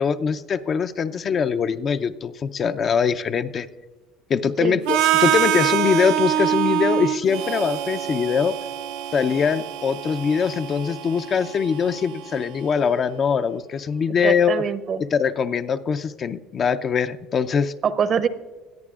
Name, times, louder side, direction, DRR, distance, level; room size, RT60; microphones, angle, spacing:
voice 1, 0.0-3.7 4.3-8.5 9.1-14.6 15.0-17.7, left 6 dB, 40° left, 11 dB, 0.5 m, -22 dB
Harmonica, 4.9-12.8, right 11 dB, 80° right, 0.6 m, -25 dB
voice 2, 14.2-15.0 17.8-18.3, right 7 dB, 45° right, 13 dB, 0.7 m, -23 dB
20.0 x 13.5 x 2.4 m, 1.3 s
supercardioid pair, 95°, 0 cm